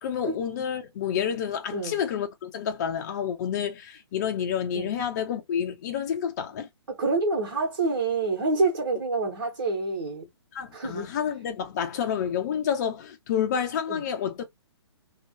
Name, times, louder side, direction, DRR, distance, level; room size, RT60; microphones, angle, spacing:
voice 1, 0.0-6.7 10.5-14.4, left 8 dB, 35° left, 0.6 m, -29 dB
voice 2, 6.9-10.3 10.7-11.1 13.9-14.0, right 3 dB, 60° right, 1.4 m, -27 dB
2.9 x 2.4 x 2.8 m
figure-of-eight pair, 125°, 15 cm